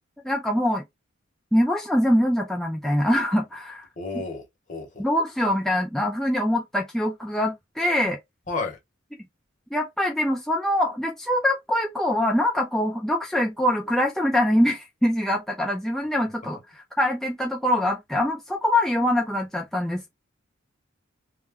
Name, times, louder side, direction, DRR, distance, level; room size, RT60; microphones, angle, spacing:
voice 1, 0.2-0.8 1.5-3.9 5.0-8.2 9.7-20.1, left 1 dB, ahead, 0.4 m, -24 dB
voice 2, 4.0-5.0 8.5-8.8, left 3 dB, 40° left, 0.9 m, -32 dB
2.3 x 2.1 x 3.4 m
head